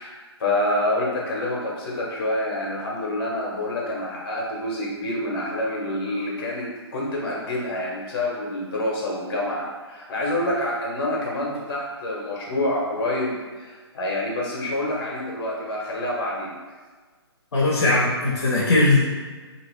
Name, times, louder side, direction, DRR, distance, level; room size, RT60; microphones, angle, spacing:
voice 1, 0.0-16.5, left 1 dB, 55° left, -3 dB, 1.1 m, -27 dB
voice 2, 17.5-19.0, left 2 dB, 75° left, -6 dB, 0.9 m, -19 dB
2.8 x 2.6 x 3.1 m, 1.4 s
figure-of-eight pair, 135°, 14 cm